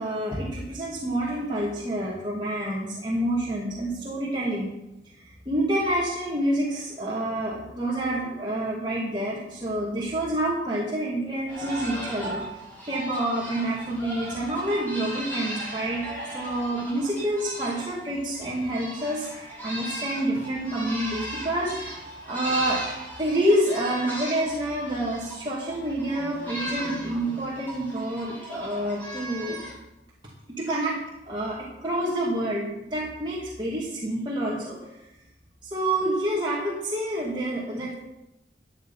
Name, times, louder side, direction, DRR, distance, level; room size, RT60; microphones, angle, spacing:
voice 1, 0.0-4.7 5.1-22.8 23.2-29.6 30.6-31.0 31.3-34.8 35.6-38.0, right 1 dB, 25° right, -5 dB, 2.4 m, -28 dB
sound 1, 11.5-29.7, right 1 dB, 10° left, 6.7 m, -37 dB
15.5 x 9.4 x 5.6 m, 0.91 s
head